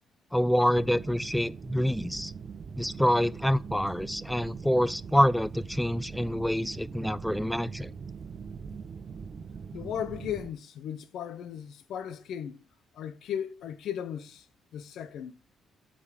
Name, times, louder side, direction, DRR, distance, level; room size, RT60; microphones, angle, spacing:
voice 1, 0.3-2.3 2.8-7.9, equal, 5° left, 0.4 m, -26 dB
sound 1, 0.8-10.5, right 6 dB, 45° right, 1.1 m, -42 dB
voice 2, 9.7-12.6 12.9-14.5 14.7-15.4, left 9 dB, 75° left, 0.8 m, -36 dB
8.3 x 5.3 x 5.3 m
cardioid pair, 90°, 0 cm